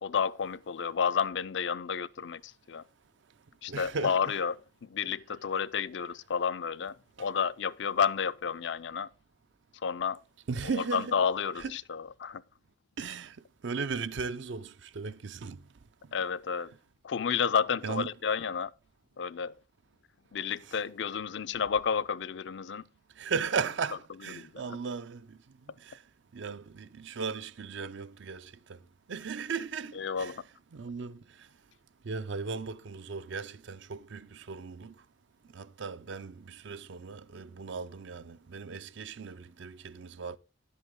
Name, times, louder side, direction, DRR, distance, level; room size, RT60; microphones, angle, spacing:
voice 1, 0.0-2.8 3.6-4.5 4.8-9.1 9.8-10.2 10.7-12.4 16.1-16.7 17.0-18.7 19.2-19.5 20.3-22.8 24.4-24.5 30.0-30.4, left 6 dB, 65° left, 0.4 m, -31 dB
voice 2, 3.7-4.4 7.2-7.3 10.5-11.1 11.6-11.7 13.0-13.4 13.6-15.6 16.0-16.1 17.8-18.1 20.6-20.8 23.2-25.4 25.8-26.0 26.3-28.8 29.1-30.4 30.7-31.5 32.0-34.9 35.5-40.4, right 5 dB, 65° right, 0.5 m, -37 dB
11.0 x 8.2 x 3.7 m
head